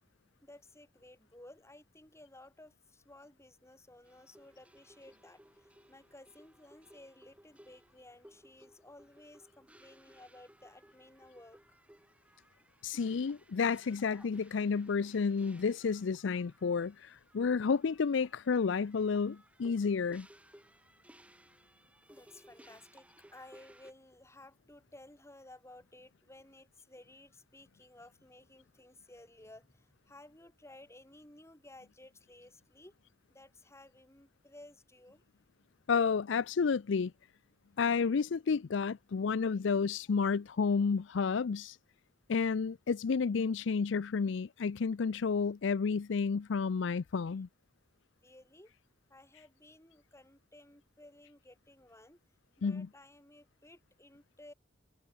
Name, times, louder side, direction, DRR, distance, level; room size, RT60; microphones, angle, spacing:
voice 1, 0.4-11.8 22.1-23.1 23.3-33.0 33.3-35.2 48.2-48.7 49.1-52.2 52.6-54.5, left 1 dB, 15° left, 5.2 m, -56 dB
sound 1, 4.1-23.9, right 1 dB, 5° right, 2.4 m, -61 dB
voice 2, 12.8-20.3 35.9-37.1 37.8-41.8 42.3-47.5 52.6-52.9, left 5 dB, 65° left, 0.5 m, -31 dB
head